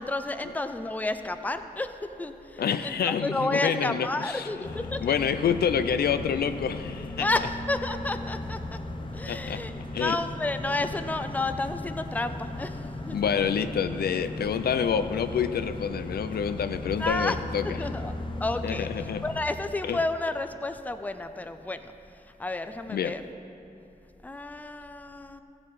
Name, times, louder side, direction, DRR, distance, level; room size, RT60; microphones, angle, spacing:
voice 1, 0.0-1.9 2.2-5.1 7.2-8.8 9.1-9.7 10.0-12.8 13.1-13.2 17.0-17.4 17.8-18.1 18.4-18.9 19.2-21.9 22.4-23.2 24.2-25.4, left 2 dB, 10° left, 9 dB, 0.5 m, -31 dB
voice 2, 2.6-4.7 5.0-7.3 9.3-9.6 9.9-10.2 13.1-17.9 18.6-19.2 19.8-20.0 22.9-23.1, left 7 dB, 85° left, 11 dB, 0.4 m, -28 dB
sound 1, 4.6-19.4, left 2 dB, 30° left, 0.8 m, -37 dB
15.0 x 7.4 x 4.8 m, 2.8 s
wide cardioid pair, 105°, 16 cm